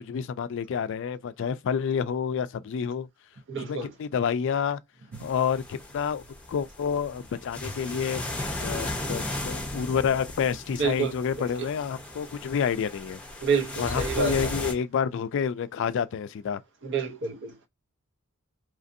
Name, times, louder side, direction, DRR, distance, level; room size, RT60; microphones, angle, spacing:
voice 1, 0.0-3.1 3.7-4.8 5.2-6.2 6.5-8.2 8.6-13.2 13.8-16.6, left 7 dB, 60° left, 0.3 m, -29 dB
voice 2, 3.5-3.9 10.8-11.5 13.4-14.5 16.8-17.7, right 5 dB, 55° right, 0.6 m, -28 dB
sound 1, 5.1-14.7, left 1 dB, 5° left, 0.7 m, -36 dB
3.0 x 2.6 x 2.6 m
head